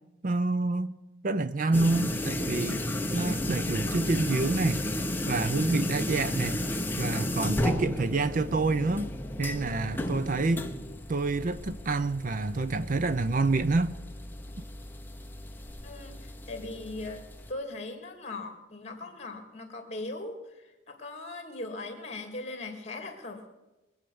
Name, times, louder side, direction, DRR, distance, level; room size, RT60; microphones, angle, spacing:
voice 1, 0.2-0.9 1.2-2.8 3.1-4.8 5.2-6.7 7.0-9.1 9.4-10.7 11.1-13.9, right 3 dB, 45° right, 0.5 m, -27 dB
sound 1, 1.7-17.5, left 1 dB, 10° left, 0.9 m, -33 dB
voice 2, 15.8-20.4 20.9-23.5, left 2 dB, 35° left, 2.4 m, -39 dB
22.5 x 8.2 x 7.0 m
head